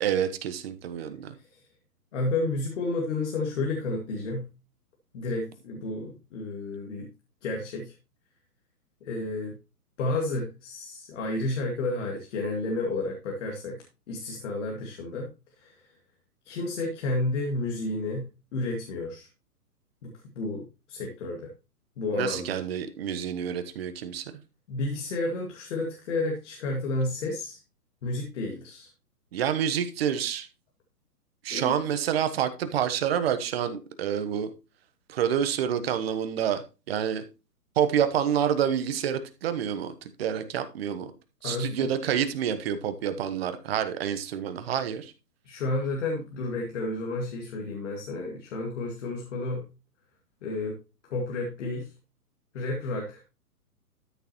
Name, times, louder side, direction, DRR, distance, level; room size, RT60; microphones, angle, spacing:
voice 1, 0.0-1.3 22.1-24.3 29.3-30.5 31.4-34.5 35.1-37.2 37.8-41.1 41.4-45.1, right 9 dB, 40° right, 1.1 m, -28 dB
voice 2, 2.1-4.5 5.1-7.1 7.4-7.9 9.0-9.6 10.0-15.3 15.6-15.9 16.4-19.3 20.0-21.5 22.0-22.6 24.7-27.6 28.0-28.9 31.5-32.0 41.4-41.9 45.4-49.7 50.4-50.8 51.1-51.9 52.5-53.2, left 2 dB, 50° left, 2.2 m, -31 dB
12.5 x 6.5 x 3.0 m
hypercardioid pair, 145°, 47 cm